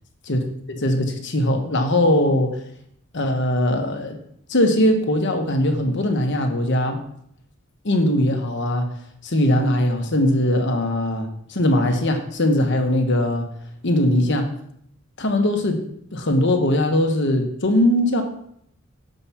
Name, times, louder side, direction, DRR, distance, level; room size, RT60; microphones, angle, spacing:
voice 1, 0.3-2.6 3.1-4.2 4.5-7.0 7.8-8.9 9.2-13.5 13.8-14.5 15.2-15.8 16.1-18.2, left 1 dB, 55° left, 4 dB, 1.2 m, -20 dB
7.3 x 5.3 x 5.7 m, 0.70 s
head